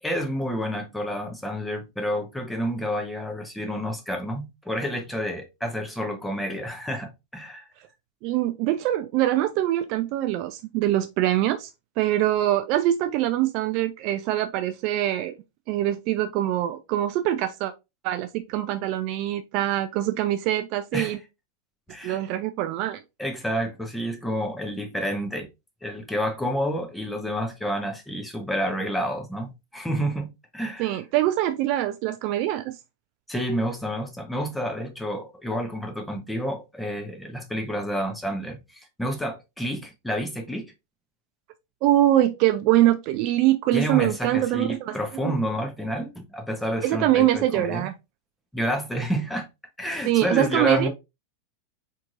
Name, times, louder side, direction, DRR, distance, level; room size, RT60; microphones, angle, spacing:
voice 1, 0.0-7.6 20.9-21.2 21.9-22.2 23.2-25.5 25.8-30.9 33.3-40.7 43.7-47.9 48.5-49.5 49.8-50.9, equal, 5° left, 1.1 m, -29 dB
voice 2, 8.2-11.7 12.0-15.3 15.7-17.7 18.0-21.2 22.0-23.0 30.8-32.7 41.8-45.0 45.2-45.3 46.8-47.9 50.0-50.9, right 13 dB, 45° right, 0.4 m, -23 dB
4.4 x 4.0 x 2.5 m
figure-of-eight pair, 90°, 0 cm